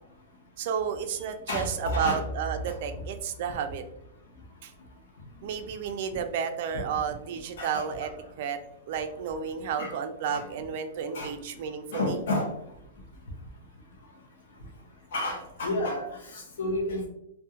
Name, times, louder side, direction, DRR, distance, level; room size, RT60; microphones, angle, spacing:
voice 1, 0.6-3.8 4.6-4.7 5.4-8.1 8.4-8.6 8.9-12.2, right 7 dB, 50° right, 8 dB, 0.3 m, -32 dB
voice 2, 1.5-2.2 2.6-2.7 7.6-8.1 9.8-9.9 10.3-10.4 11.1-11.3 11.9-12.5 15.1-17.1, left 1 dB, 75° left, 0 dB, 0.6 m, -30 dB
2.3 x 2.1 x 2.7 m, 0.78 s
hypercardioid pair, 160°, 0 cm